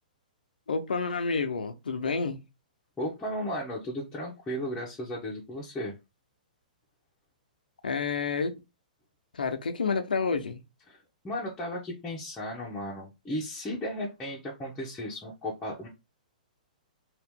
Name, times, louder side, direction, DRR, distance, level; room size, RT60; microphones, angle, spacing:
voice 1, 0.7-2.4 7.8-8.6 9.3-10.6, left 4 dB, 90° left, 0.7 m, -29 dB
voice 2, 3.0-5.9 10.9-15.9, equal, 10° left, 1.0 m, -35 dB
2.9 x 2.6 x 3.6 m
hypercardioid pair, 135°, 5 cm